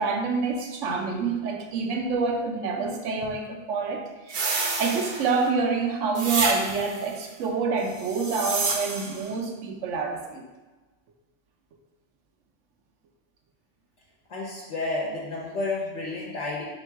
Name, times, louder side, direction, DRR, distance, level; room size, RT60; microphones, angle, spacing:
voice 1, 0.0-10.4, right 4 dB, 80° right, 2 dB, 1.0 m, -27 dB
sound 1, 4.3-5.5 6.1-7.0 8.0-9.2, right 3 dB, 55° right, 0.7 m, -29 dB
voice 2, 14.3-16.6, left 2 dB, 70° left, -5 dB, 1.1 m, -31 dB
3.6 x 2.9 x 4.4 m, 1.2 s
omnidirectional pair, 1.2 m